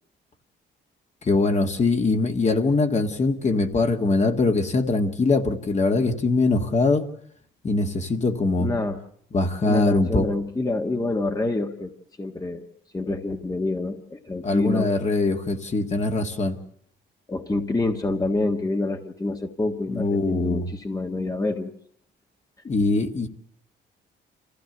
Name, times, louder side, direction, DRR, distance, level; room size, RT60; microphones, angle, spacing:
voice 1, 1.2-7.1 7.6-8.7 9.3-10.3 14.4-16.6 19.9-20.7 22.6-23.3, left 3 dB, 35° left, 5 dB, 1.9 m, -22 dB
voice 2, 8.6-9.0 9.6-11.9 12.2-12.6 12.9-14.9 17.3-21.7, left 2 dB, 20° left, 4 dB, 1.5 m, -27 dB
25.5 x 15.5 x 8.0 m, 0.65 s
cardioid pair, 90°, 20 cm